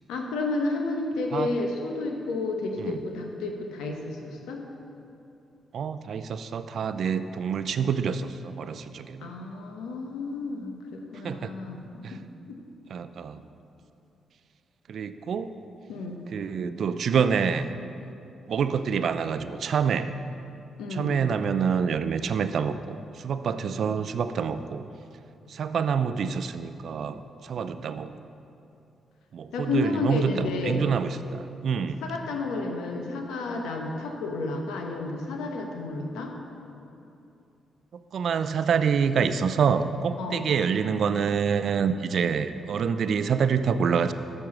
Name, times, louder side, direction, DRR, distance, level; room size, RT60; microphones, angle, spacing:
voice 1, 0.1-4.6 9.2-12.2 12.5-12.6 15.9-16.2 20.8-21.2 29.5-30.8 32.0-36.3 40.2-40.4, left 3 dB, 90° left, 2 dB, 1.0 m, -31 dB
voice 2, 5.7-9.3 11.2-11.5 12.0-12.2 12.9-13.4 14.9-15.5 16.3-17.7 18.5-20.1 20.9-24.9 25.5-28.1 29.3-32.0 38.1-44.1, right 6 dB, 65° right, 11 dB, 0.4 m, -27 dB
7.2 x 6.4 x 6.0 m, 2.7 s
supercardioid pair, 60°, 0 cm